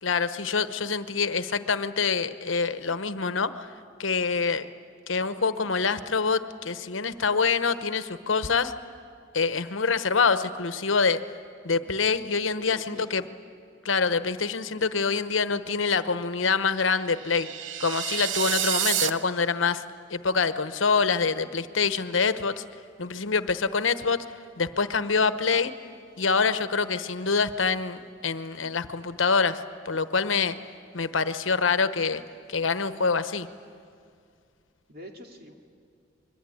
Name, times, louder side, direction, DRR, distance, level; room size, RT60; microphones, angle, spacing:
voice 1, 0.0-3.7 4.0-4.7 5.1-8.7 9.3-11.2 11.6-13.2 13.8-17.5 17.8-19.8 20.1-22.6 23.0-24.2 24.6-25.7 26.2-30.6 30.9-32.2 32.5-33.5, left 5 dB, 85° left, 12 dB, 1.0 m, -25 dB
voice 2, 12.5-13.1 34.9-35.5, left 1 dB, 50° right, 2 dB, 2.7 m, -45 dB
sound 1, 17.1-19.1, right 9 dB, 75° right, 0.9 m, -28 dB
25.5 x 22.5 x 9.5 m, 2.2 s
head